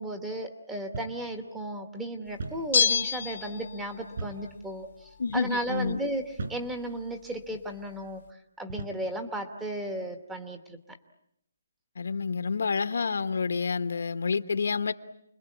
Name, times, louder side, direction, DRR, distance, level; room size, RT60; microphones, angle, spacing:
voice 1, 0.0-8.2 8.6-10.8, right 1 dB, 5° right, 5 dB, 1.2 m, -35 dB
sound 1, 0.9-1.2 1.6-1.7 2.4-2.7 4.2-4.5 5.2-5.4 6.4-6.7 7.5-7.7 8.7-9.1, right 3 dB, 50° right, 5.4 m, -38 dB
Bell, 2.7-4.1 4.4-4.5, left 7 dB, 45° left, 1.1 m, -27 dB
voice 2, 5.2-6.0 12.0-14.9, left 5 dB, 70° left, 11 dB, 1.3 m, -28 dB
29.5 x 21.5 x 8.4 m, 0.75 s
hypercardioid pair, 175°, 0 cm